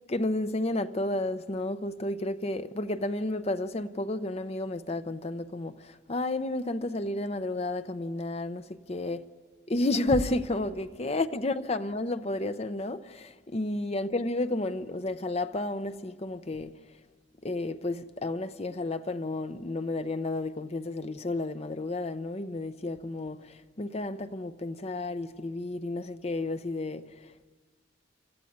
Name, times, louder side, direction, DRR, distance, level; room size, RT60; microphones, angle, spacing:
voice 1, 0.1-9.2 9.7-16.7 17.4-27.5, left 2 dB, 35° left, 0.7 m, -31 dB
26.0 x 14.0 x 9.4 m
head